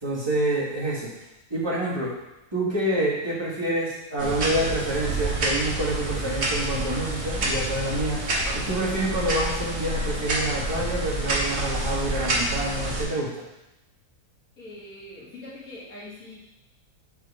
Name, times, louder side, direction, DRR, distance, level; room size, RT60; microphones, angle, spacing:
voice 1, 0.0-1.1 1.5-2.1 2.5-8.3 8.5-13.4, right 1 dB, 15° right, -7 dB, 1.5 m, -27 dB
sound 1, 4.2-13.1, right 2 dB, 45° right, 1.3 m, -28 dB
voice 2, 14.6-16.4, left 1 dB, 60° left, -6 dB, 2.2 m, -42 dB
4.6 x 4.6 x 4.8 m, 0.95 s
omnidirectional pair, 1.7 m